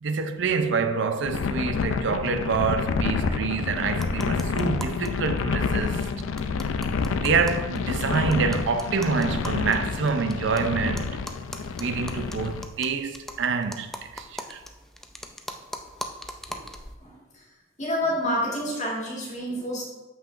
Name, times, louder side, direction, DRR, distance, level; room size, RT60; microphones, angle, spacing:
voice 1, 0.0-6.1 7.1-11.2 11.8-14.6, right 5 dB, 65° right, 0.5 m, -27 dB
sound 1, 1.2-12.6, left 4 dB, 85° left, 0.4 m, -28 dB
sound 2, 3.9-5.1 5.4-5.5 5.7-5.8 6.0-10.6 11.0-17.0, equal, ahead, 0.3 m, -40 dB
voice 2, 17.0-17.4 17.8-19.8, equal, 40° left, 1.7 m, -29 dB
7.0 x 5.8 x 2.5 m
head